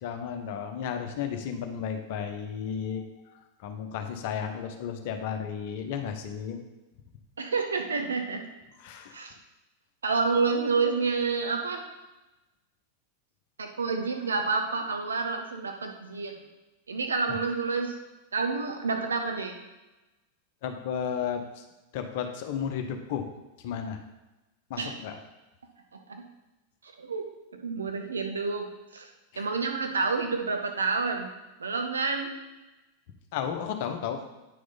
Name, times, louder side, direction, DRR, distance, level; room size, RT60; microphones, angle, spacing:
voice 1, 0.0-6.6 8.8-9.2 20.6-21.6 21.9-23.3 23.6-24.0 24.7-25.2 29.3-29.5 33.3-34.2, left 8 dB, 50° left, 6 dB, 0.9 m, -33 dB
voice 2, 7.4-8.5 9.1-9.3 10.0-11.8 13.6-16.4 16.9-17.9 18.3-19.6 24.8-24.9 25.9-26.2 27.0-27.2 27.5-28.7 28.9-29.1 29.4-31.3 31.6-32.3, right 4 dB, 70° right, 4 dB, 1.1 m, -29 dB
9.2 x 4.8 x 4.1 m, 1.0 s
figure-of-eight pair, 90°, 0 cm